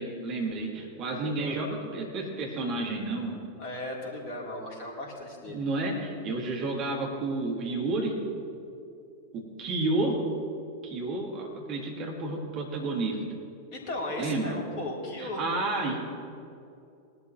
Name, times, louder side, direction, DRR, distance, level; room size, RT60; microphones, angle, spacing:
voice 1, 0.0-3.4 5.5-8.1 9.3-10.2 10.8-13.2 14.2-14.5 15.2-16.0, right 2 dB, 35° right, -2 dB, 3.0 m, -31 dB
voice 2, 1.2-1.5 3.6-5.6 13.7-15.4, left 1 dB, 45° left, -3 dB, 3.5 m, -36 dB
20.0 x 12.0 x 3.1 m, 2.6 s
figure-of-eight pair, 90°, 0 cm